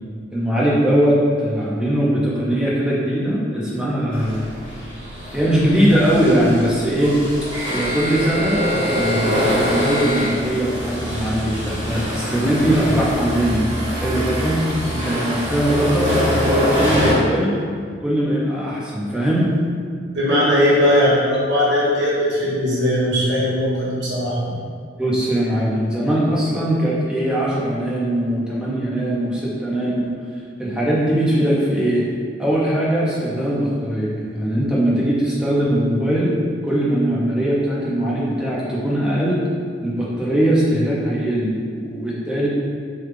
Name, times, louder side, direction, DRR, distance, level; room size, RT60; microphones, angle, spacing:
voice 1, 0.3-4.5 5.3-7.2 7.7-8.6 8.9-14.6 14.9-17.6 18.0-19.5 24.5-24.6 25.0-30.1 30.6-32.0 32.4-36.3 36.6-39.4 39.8-42.5, right 1 dB, 5° right, -7 dB, 0.5 m, -20 dB
sound 1, 4.1-17.1, equal, 30° right, 1.4 m, -24 dB
voice 2, 20.1-24.4, equal, 65° right, -7 dB, 1.0 m, -18 dB
3.3 x 2.3 x 3.2 m, 2.1 s
head